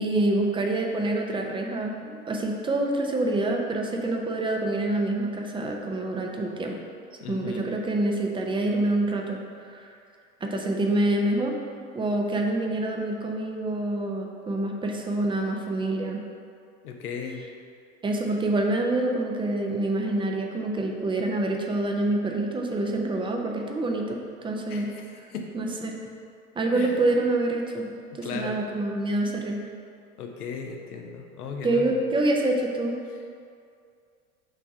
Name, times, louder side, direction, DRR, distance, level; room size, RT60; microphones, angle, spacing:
voice 1, 0.0-6.8 7.3-9.4 9.7-9.9 10.4-11.5 11.9-16.2 18.0-24.9 25.5-26.0 26.6-29.7 31.6-33.0, right 2 dB, 10° right, 1 dB, 0.5 m, -26 dB
voice 2, 7.2-7.7 16.8-17.4 24.7-25.6 26.7-27.0 28.1-28.6 30.2-32.0, left 6 dB, 75° left, 2 dB, 0.9 m, -36 dB
5.6 x 3.5 x 5.4 m, 2.3 s
figure-of-eight pair, 80°, 46 cm